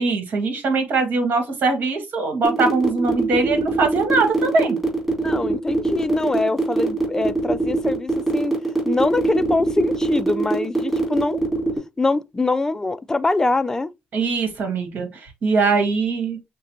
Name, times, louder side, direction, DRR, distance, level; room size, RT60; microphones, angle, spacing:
voice 1, 0.0-4.8 14.1-16.4, right 4 dB, 55° right, 1.5 m, -21 dB
sound 1, 2.4-11.8, right 3 dB, 10° right, 2.5 m, -22 dB
voice 2, 5.2-8.6 8.8-11.4 12.0-13.9, left 2 dB, 15° left, 0.4 m, -23 dB
6.3 x 2.2 x 2.8 m
cardioid pair, 95°, 4 cm